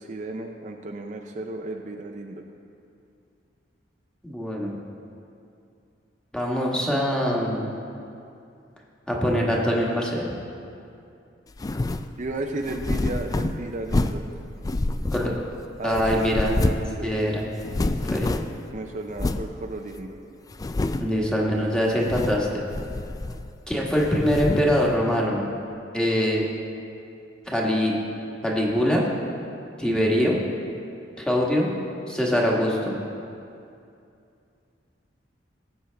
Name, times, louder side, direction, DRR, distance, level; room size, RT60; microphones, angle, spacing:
voice 1, 0.0-2.4 12.2-14.2 15.8-17.3 18.7-20.2, right 2 dB, 45° right, 3 dB, 0.6 m, -33 dB
voice 2, 4.2-4.7 6.3-7.7 9.1-10.2 15.1-15.3 15.8-16.5 17.0-17.5 18.0-18.4 21.0-22.6 23.7-25.4 25.9-26.4 27.5-27.9 28.4-29.1 29.8-30.4 31.2-31.7 32.1-32.9, equal, 5° left, -3 dB, 1.5 m, -23 dB
sound 1, 11.6-12.1 12.6-14.3 14.6-15.6 15.9-17.0 17.2-17.3 17.6-18.6 19.2-19.5 20.0-20.1 20.5-21.2 21.9-22.5 22.7-23.6 24.0-24.8, left 2 dB, 20° left, 0.3 m, -27 dB
18.0 x 7.9 x 3.4 m, 2.6 s
head